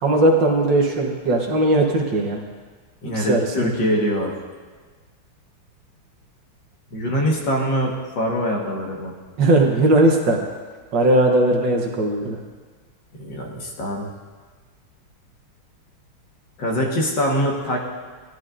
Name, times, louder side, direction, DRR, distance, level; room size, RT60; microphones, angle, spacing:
voice 1, 0.0-2.4 3.1-3.7 9.4-10.4 10.9-12.4, right 1 dB, 60° right, 1 dB, 1.7 m, -18 dB
voice 2, 3.0-4.3 6.9-9.1 13.1-14.1 16.6-17.8, equal, 60° left, -1 dB, 2.1 m, -23 dB
16.5 x 11.0 x 2.5 m, 1.4 s
omnidirectional pair, 2.3 m